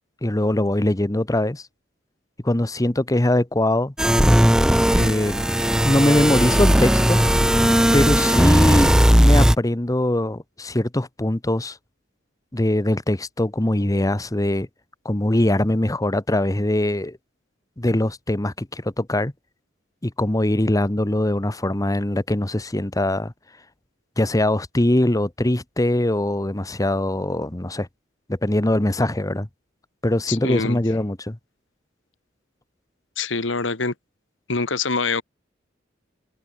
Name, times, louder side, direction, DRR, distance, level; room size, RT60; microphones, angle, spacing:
voice 1, 0.2-1.6 2.4-3.9 4.9-5.5 5.8-7.2 7.9-11.8 12.5-14.7 15.0-17.2 17.8-19.3 20.0-23.3 24.2-27.9 28.3-29.5 30.0-31.4, left 1 dB, 20° left, 1.1 m, -22 dB
sound 1, 4.0-9.5, equal, 5° right, 0.8 m, -17 dB
voice 2, 30.3-30.8 33.2-33.9 34.5-35.2, left 4 dB, 80° left, 1.8 m, -24 dB
head